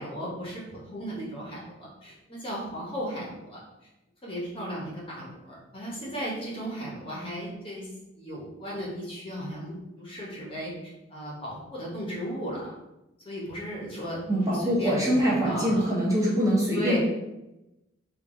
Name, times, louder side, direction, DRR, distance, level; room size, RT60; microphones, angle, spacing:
voice 1, 0.0-3.6 4.2-7.9 8.1-12.7 13.2-15.9 16.7-17.0, equal, 25° left, -5 dB, 0.9 m, -36 dB
voice 2, 14.3-17.0, equal, 15° right, -6 dB, 1.0 m, -24 dB
3.9 x 2.6 x 3.7 m, 0.94 s
head